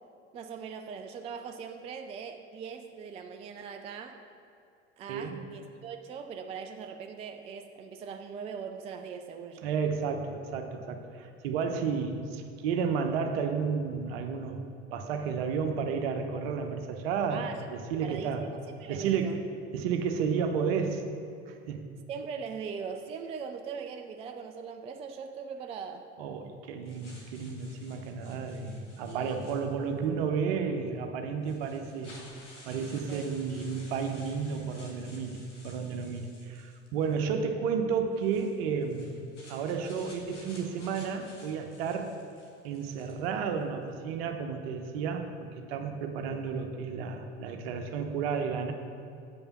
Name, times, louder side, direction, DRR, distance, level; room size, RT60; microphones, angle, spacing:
voice 1, 0.3-4.2 5.0-10.2 17.3-17.6 18.0-19.4 22.1-26.1 29.1-29.5 33.1-33.7, right 6 dB, 20° right, 6 dB, 0.3 m, -41 dB
voice 2, 5.1-5.4 9.6-18.5 18.9-21.0 21.5-21.8 26.2-32.2 32.7-39.2 39.5-42.1 42.6-48.7, right 6 dB, 55° right, 5 dB, 0.9 m, -32 dB
sound 1, 26.9-30.0 30.9-31.0 31.4-37.2 38.1-43.3, left 1 dB, 80° left, 1.5 m, -54 dB
7.9 x 5.4 x 5.8 m, 2.6 s
figure-of-eight pair, 70°, 35 cm